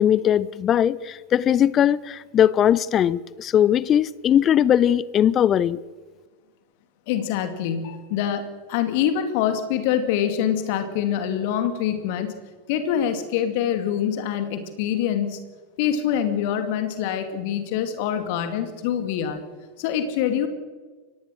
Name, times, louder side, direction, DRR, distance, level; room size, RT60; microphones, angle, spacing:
voice 1, 0.0-5.8, left 10 dB, 30° left, 0.5 m, -19 dB
voice 2, 7.1-12.3 12.7-15.4 15.8-19.4 19.8-20.5, left 9 dB, 50° left, 2.3 m, -25 dB
24.0 x 18.5 x 6.4 m
figure-of-eight pair, 90°, 0 cm